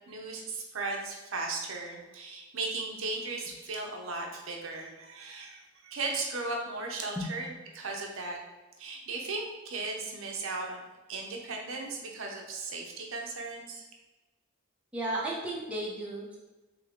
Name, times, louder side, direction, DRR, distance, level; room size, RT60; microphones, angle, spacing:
voice 1, 0.1-7.5 7.7-8.4 8.8-10.8 11.1-13.8, right 3 dB, 65° right, 1 dB, 0.6 m, -36 dB
voice 2, 14.9-16.4, right 1 dB, 5° right, -5 dB, 0.6 m, -34 dB
3.5 x 3.3 x 3.6 m, 1.1 s
head